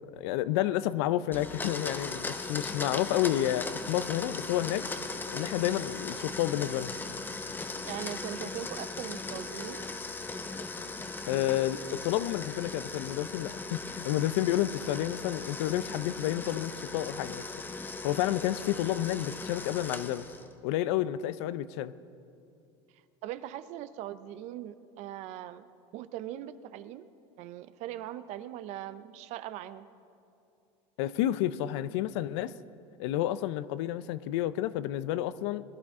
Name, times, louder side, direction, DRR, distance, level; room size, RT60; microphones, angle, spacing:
voice 1, 0.1-4.9 5.3-6.9 11.3-17.4 17.8-20.3 20.6-21.9 31.0-32.5 33.0-35.6, left 13 dB, 75° left, 16 dB, 0.5 m, -30 dB
Domestic sounds home sounds, 1.3-20.5, left 3 dB, 15° left, 0.8 m, -38 dB
voice 2, 7.8-9.9 23.2-25.7 25.9-27.1 27.4-29.9, right 12 dB, 55° right, 13 dB, 0.6 m, -40 dB
21.0 x 11.5 x 3.7 m, 2.5 s
supercardioid pair, 125°, 14 cm